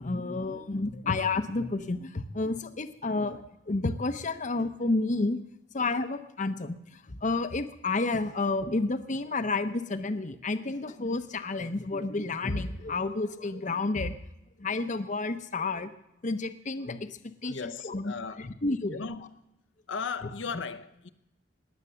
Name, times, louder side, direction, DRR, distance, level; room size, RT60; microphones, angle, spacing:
voice 1, 0.0-5.4 5.7-14.2 14.6-15.9 16.2-17.1 17.4-18.1 18.4-19.0, left 3 dB, 40° left, 0.8 m, -30 dB
voice 2, 17.5-18.5 18.9-19.6 19.9-21.1, left 5 dB, 75° left, 0.7 m, -37 dB
19.0 x 8.9 x 6.9 m
head